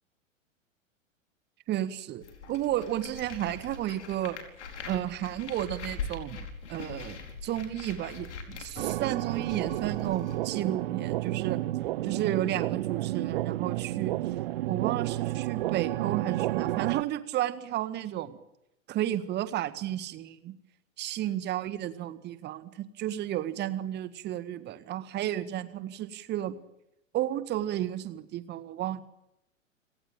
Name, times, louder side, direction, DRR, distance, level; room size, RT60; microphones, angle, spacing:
voice 1, 1.7-4.4 4.9-11.6 12.0-14.1 14.7-18.4 18.9-20.5 21.0-26.6 27.1-29.0, right 12 dB, 25° right, 13 dB, 1.8 m, -32 dB
sound 1, 2.2-10.4, left 5 dB, 60° left, 4.8 m, -42 dB
sound 2, 8.8-17.0, right 16 dB, 45° right, 1.0 m, -31 dB
29.5 x 18.0 x 9.1 m, 0.87 s
figure-of-eight pair, 100°, 39 cm